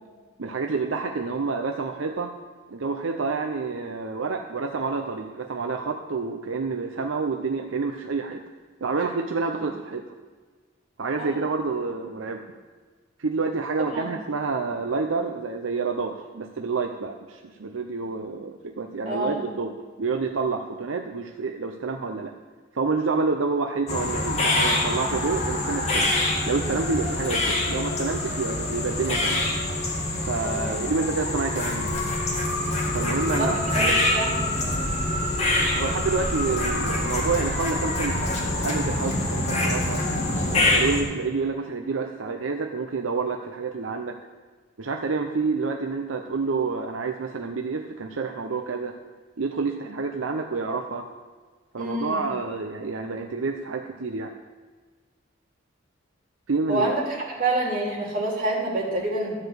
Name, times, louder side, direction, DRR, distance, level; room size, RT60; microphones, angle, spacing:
voice 1, 0.4-2.3 2.7-8.4 8.8-10.1 11.0-12.4 13.2-22.3 22.7-26.1 26.5-29.4 30.2-32.0 32.9-34.1 35.8-40.0 40.5-44.2 44.8-49.0 49.4-51.1 51.7-54.3 56.5-56.9, right 4 dB, 80° right, 3 dB, 0.7 m, -28 dB
voice 2, 11.2-11.5 13.8-14.1 19.1-19.4 30.4-30.8 33.7-34.8 51.8-52.2 56.7-57.0 57.4-59.3, right 2 dB, 45° right, -3 dB, 2.9 m, -28 dB
sound 1, 23.9-41.0, left 1 dB, 35° left, 2.1 m, -25 dB
13.0 x 4.9 x 7.9 m, 1.5 s
head